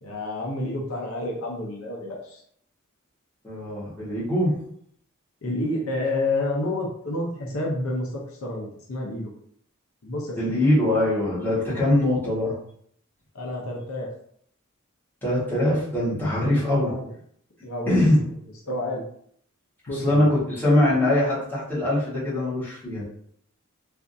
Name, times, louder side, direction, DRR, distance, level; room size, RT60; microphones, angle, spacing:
voice 1, 0.0-2.4 5.4-9.3 10.0-10.5 11.7-11.8 13.3-14.1 16.8-17.1 17.6-18.0 18.7-19.0 19.9-20.3, left 2 dB, 75° left, -1 dB, 0.7 m, -29 dB
voice 2, 3.4-4.6 10.4-12.5 15.2-16.9 17.9-18.2 19.8-23.0, left 1 dB, 10° left, -10 dB, 1.4 m, -22 dB
3.4 x 2.5 x 2.6 m, 0.66 s
head